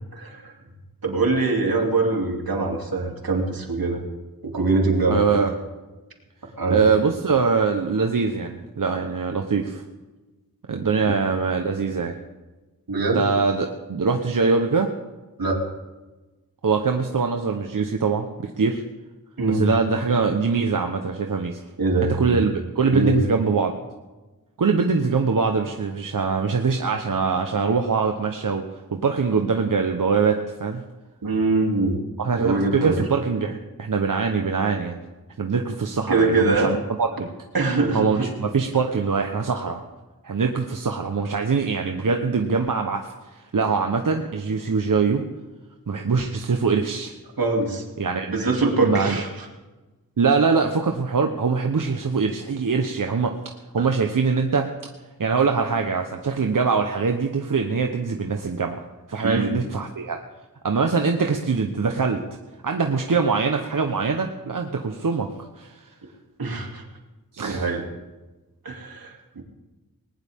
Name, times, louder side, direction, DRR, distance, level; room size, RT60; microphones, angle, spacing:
voice 1, 0.1-0.5 1.0-4.0 4.4-5.2 6.6-6.8 11.0-11.1 12.9-13.3 15.4-15.6 19.4-19.7 21.8-22.5 22.9-23.2 31.2-32.0 32.4-33.0 36.1-36.7 37.5-38.3 47.4-47.8 48.3-49.5 53.8-53.9 59.2-59.5 66.4-66.8 67.5-67.9 68.6-69.4, right 3 dB, 85° right, 1 dB, 2.9 m, -23 dB
voice 2, 5.1-5.5 6.7-9.8 10.7-12.1 13.1-14.9 16.6-18.8 19.5-21.6 22.0-23.8 24.6-28.6 28.9-30.8 32.2-35.0 35.4-37.3 37.9-39.8 40.2-45.2 45.9-47.1 48.0-48.3 48.8-49.2 50.2-53.3 53.7-54.7 55.2-58.8 59.1-60.2 60.6-62.2 62.6-65.3 65.6-65.8 67.3-67.7, right 5 dB, 65° right, 4 dB, 1.1 m, -23 dB
19.5 x 19.5 x 3.7 m, 1.2 s
wide cardioid pair, 80°, 35 cm